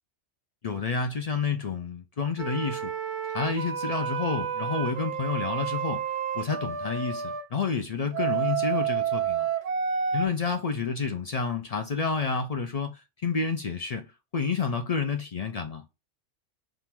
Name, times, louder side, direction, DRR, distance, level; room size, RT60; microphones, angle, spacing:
voice 1, 0.6-2.9 3.3-6.0 6.3-9.5 10.1-14.1 14.3-15.8, left 5 dB, 65° left, 0.3 m, -29 dB
sound 1, 2.4-7.4 8.1-10.3, right 8 dB, 50° right, 0.7 m, -30 dB
3.7 x 2.5 x 4.4 m
omnidirectional pair, 1.3 m